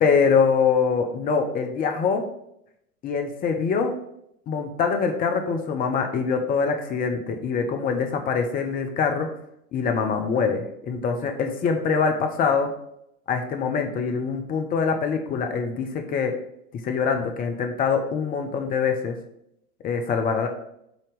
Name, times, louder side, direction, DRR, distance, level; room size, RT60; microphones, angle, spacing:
voice 1, 0.0-2.2 3.0-3.9 4.5-9.3 9.7-12.7 13.3-16.3 16.8-19.2 19.8-20.5, left 5 dB, 20° left, 5 dB, 0.6 m, -24 dB
7.8 x 2.9 x 5.1 m, 0.77 s
figure-of-eight pair, 95°, 44 cm